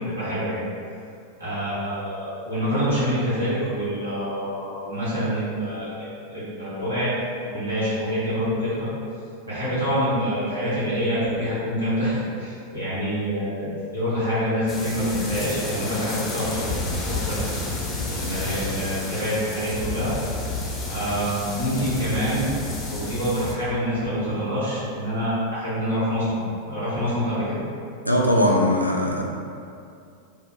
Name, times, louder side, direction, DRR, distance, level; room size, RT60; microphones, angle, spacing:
voice 1, 0.1-0.6 1.4-7.1 7.4-8.9 9.4-16.6 17.0-17.4 18.1-20.1 20.8-22.5 22.9-26.4 26.7-27.6, equal, 75° right, -12 dB, 1.4 m, -26 dB
sound 1, 14.7-23.5, left 2 dB, 20° left, 0.5 m, -31 dB
voice 2, 28.1-29.2, left 1 dB, 90° left, -2 dB, 0.3 m, -20 dB
3.2 x 2.0 x 2.5 m, 2.4 s
figure-of-eight pair, 90°, 0 cm